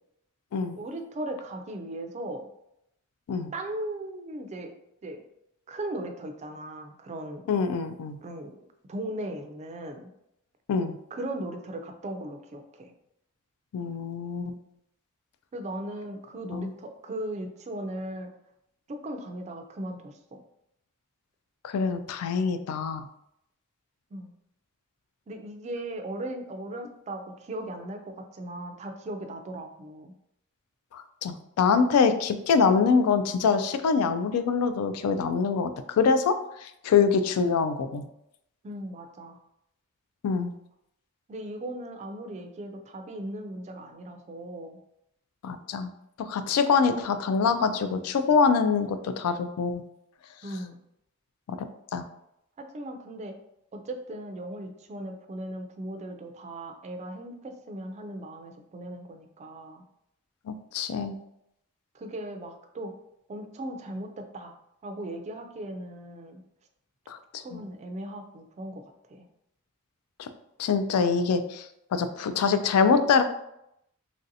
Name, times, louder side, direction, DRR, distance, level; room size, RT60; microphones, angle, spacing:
voice 1, 0.8-2.5 3.5-4.7 5.0-5.2 5.7-7.5 8.2-10.1 11.1-12.9 15.5-18.3 18.9-20.4 24.1-24.3 25.3-30.1 38.6-39.4 41.3-44.8 50.4-50.8 52.6-53.3 53.7-59.8 61.9-62.9 63.3-64.5 64.8-66.4 67.4-68.8 69.1-69.2, right 1 dB, 30° right, 5 dB, 0.3 m, -38 dB
voice 2, 7.5-8.2 10.7-10.9 13.7-14.6 16.5-16.7 21.6-23.1 30.9-36.3 36.6-38.0 40.2-40.5 45.4-45.9 46.2-49.8 51.5-51.6 51.9-52.0 60.5-61.2 67.1-67.6 70.2-70.3 70.6-71.7 71.9-73.2, left 5 dB, 85° left, 10 dB, 0.3 m, -24 dB
3.1 x 2.6 x 2.6 m, 0.79 s
head